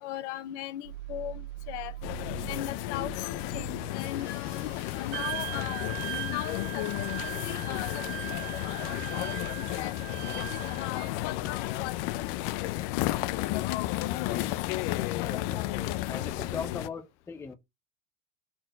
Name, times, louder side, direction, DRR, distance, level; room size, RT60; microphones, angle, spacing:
voice 1, 0.0-1.9 2.5-3.2 3.5-5.9 6.3-9.4 9.7-9.9 10.5-12.3 12.6-12.8, left 14 dB, 65° left, 1.0 m, -39 dB
sound 1, 0.8-6.1, right 14 dB, 75° right, 1.6 m, -44 dB
sound 2, 2.0-16.9, left 16 dB, 50° left, 0.6 m, -32 dB
Wind instrument woodwind instrument, 5.1-11.1, right 17 dB, 40° right, 0.4 m, -39 dB
voice 2, 15.2-17.5, left 5 dB, 5° left, 0.6 m, -40 dB
4.4 x 4.3 x 5.0 m
supercardioid pair, 145°, 38 cm